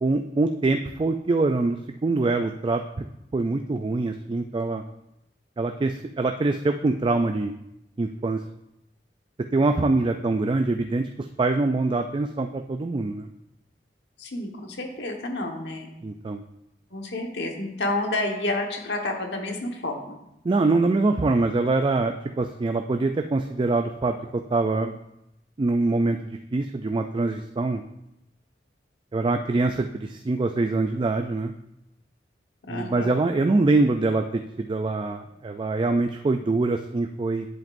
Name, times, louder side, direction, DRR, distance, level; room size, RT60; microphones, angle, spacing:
voice 1, 0.0-3.0 3.3-4.8 5.6-7.5 8.0-8.4 9.5-13.3 16.0-16.4 20.4-25.0 25.6-27.8 29.1-31.5 32.7-37.5, right 3 dB, 30° right, 6 dB, 0.3 m, -24 dB
voice 2, 14.2-15.9 16.9-20.2 32.6-33.2, left 2 dB, 75° left, 2 dB, 1.4 m, -30 dB
10.5 x 7.8 x 2.6 m, 0.85 s
head